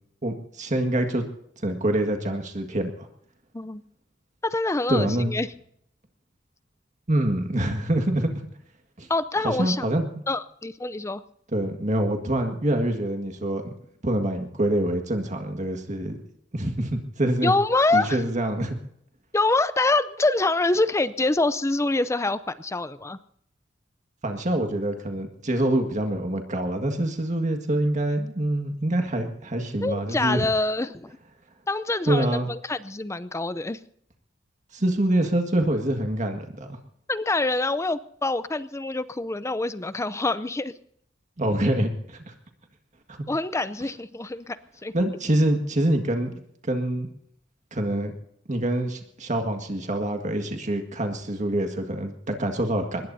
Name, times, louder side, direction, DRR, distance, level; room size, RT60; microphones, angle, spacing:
voice 1, 0.2-1.2 1.6-2.9 4.9-5.3 7.1-8.3 9.0-9.1 9.4-10.2 11.5-13.7 14.0-16.2 16.5-17.5 17.9-18.8 24.2-30.4 32.1-32.5 34.7-36.7 41.4-42.3 43.1-43.2 44.9-46.3 46.6-47.1 47.7-48.1 48.5-53.1, right 1 dB, 40° right, 5 dB, 1.8 m, -25 dB
voice 2, 4.4-5.5 9.1-9.8 10.3-11.2 17.4-18.2 19.3-23.2 29.8-31.2 31.7-33.8 37.1-40.7 43.3-44.9, left 2 dB, 15° left, 14 dB, 0.5 m, -25 dB
24.0 x 20.5 x 2.8 m, 0.70 s
head